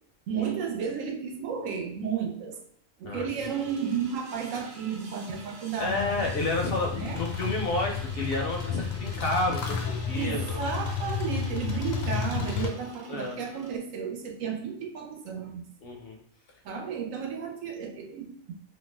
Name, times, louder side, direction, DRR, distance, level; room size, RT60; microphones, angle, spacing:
voice 1, 0.3-2.6 3.0-6.2 6.9-7.2 10.1-15.7 16.6-18.5, right 7 dB, 85° right, 3 dB, 1.0 m, -33 dB
sound 1, 3.4-13.8, right 2 dB, 60° right, 0.5 m, -48 dB
sound 2, 5.8-12.7, left 6 dB, 85° left, 1.0 m, -32 dB
voice 2, 5.8-10.6 13.1-13.4 15.8-16.2, left 2 dB, 65° left, 1 dB, 0.6 m, -30 dB
2.6 x 2.1 x 3.2 m, 0.67 s
omnidirectional pair, 1.3 m